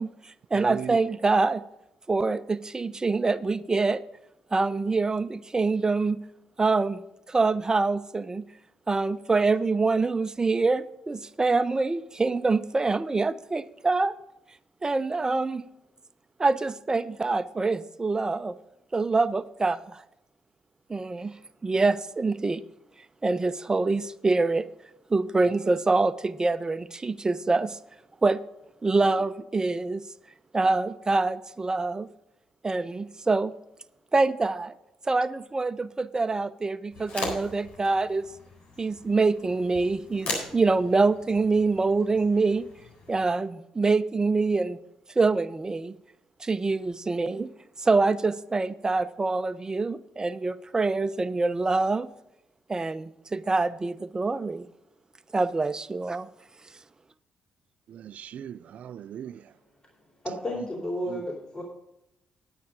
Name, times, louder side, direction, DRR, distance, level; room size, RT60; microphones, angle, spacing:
voice 1, 0.0-1.6 2.1-4.0 4.5-6.2 6.6-7.0 7.3-8.4 8.9-14.1 14.8-15.6 16.4-18.6 18.9-20.0 20.9-21.4 21.6-22.6 23.2-24.7 25.1-27.8 28.2-28.4 28.8-30.0 30.5-32.1 32.6-33.5 34.1-34.7 35.1-38.3 38.8-42.7 43.1-44.8 45.2-45.9 46.4-47.5 47.8-52.1 52.7-54.7 55.3-56.3, right 3 dB, 25° right, 0.8 m, -25 dB
voice 2, 0.5-1.0 57.9-59.4 61.1-61.2, right 9 dB, 65° right, 0.3 m, -38 dB
sound 1, 36.9-43.3, left 2 dB, 70° left, 4.3 m, -39 dB
voice 3, 60.2-61.6, equal, 30° left, 3.9 m, -32 dB
9.9 x 9.3 x 5.1 m
hypercardioid pair, 50°, 3 cm